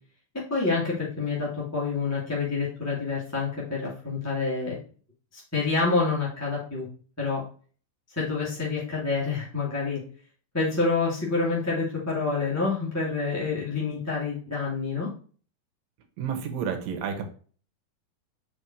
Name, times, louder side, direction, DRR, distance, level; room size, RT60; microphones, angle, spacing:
voice 1, 0.3-4.8 5.3-6.9 7.2-7.4 8.1-10.0 10.5-15.1, left 4 dB, 5° left, -6 dB, 1.7 m, -27 dB
voice 2, 16.2-17.2, right 7 dB, 70° right, 5 dB, 2.8 m, -30 dB
5.9 x 5.4 x 4.4 m, 0.41 s
omnidirectional pair, 4.4 m